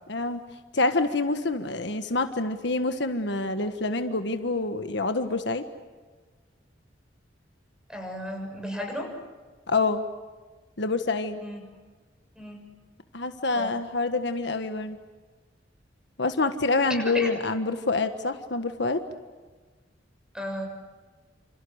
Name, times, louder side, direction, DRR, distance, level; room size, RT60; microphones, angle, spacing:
voice 1, 0.1-0.4 0.7-5.6 9.7-10.0 10.8-11.4 13.1-15.0 16.2-19.0, left 3 dB, 65° left, 8 dB, 1.5 m, -26 dB
voice 2, 7.9-9.1 11.4-11.7 12.3-12.7 13.5-13.7 16.9-17.3 20.3-20.7, equal, 5° right, 3 dB, 6.8 m, -34 dB
28.5 x 28.0 x 6.6 m, 1.4 s
head